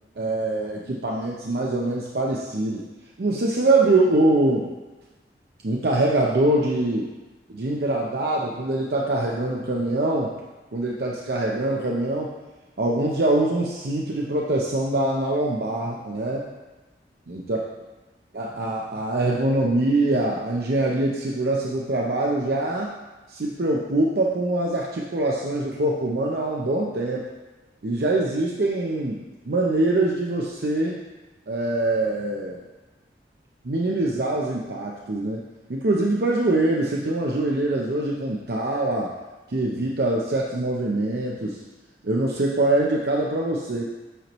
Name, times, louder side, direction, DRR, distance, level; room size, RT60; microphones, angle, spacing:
voice 1, 0.2-2.9 3.2-4.7 5.6-7.1 7.5-10.3 10.7-12.3 12.8-16.5 17.3-17.6 18.3-22.9 23.3-27.3 27.8-31.0 31.5-32.6 33.6-35.4 35.7-39.1 39.5-41.6 42.0-43.8, right 2 dB, 60° right, -2 dB, 0.6 m, -24 dB
8.0 x 4.5 x 3.0 m, 1.2 s
head